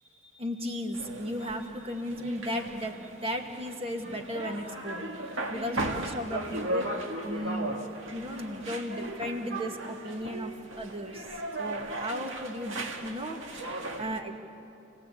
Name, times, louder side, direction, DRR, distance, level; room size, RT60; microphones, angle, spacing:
voice 1, 0.3-7.7 8.1-11.3 11.6-12.8 13.0-14.3, equal, 30° right, 3 dB, 2.0 m, -35 dB
sound 1, 0.9-14.2, right 1 dB, 80° right, 2.0 m, -37 dB
28.5 x 18.0 x 8.6 m, 2.8 s
head